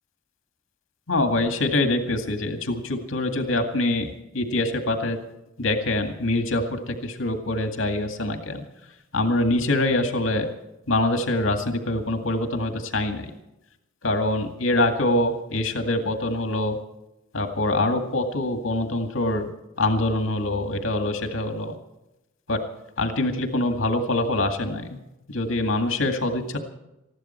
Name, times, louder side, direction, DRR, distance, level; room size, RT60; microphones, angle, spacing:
voice 1, 1.1-5.2 5.6-8.6 9.1-10.5 10.9-13.3 14.0-16.8 17.3-19.5 19.8-21.8 22.5-22.6 23.0-25.0 25.3-26.6, left 2 dB, 80° left, 5 dB, 2.1 m, -24 dB
20.5 x 15.0 x 4.5 m, 0.94 s
head